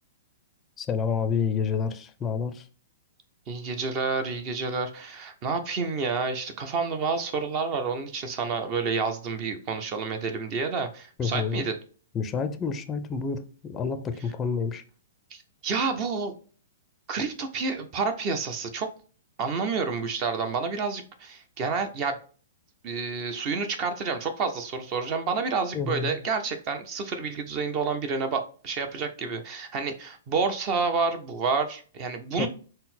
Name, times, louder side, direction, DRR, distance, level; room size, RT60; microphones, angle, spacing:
voice 1, 0.8-2.7 11.2-11.7 12.1-14.8 25.7-26.2 32.4-32.5, left 6 dB, 20° left, 0.4 m, -29 dB
voice 2, 3.5-11.7 15.3-16.3 17.1-18.9 19.4-22.2 22.8-32.5, right 4 dB, 35° right, 0.6 m, -29 dB
3.9 x 2.0 x 4.1 m
hypercardioid pair, 140°, 0 cm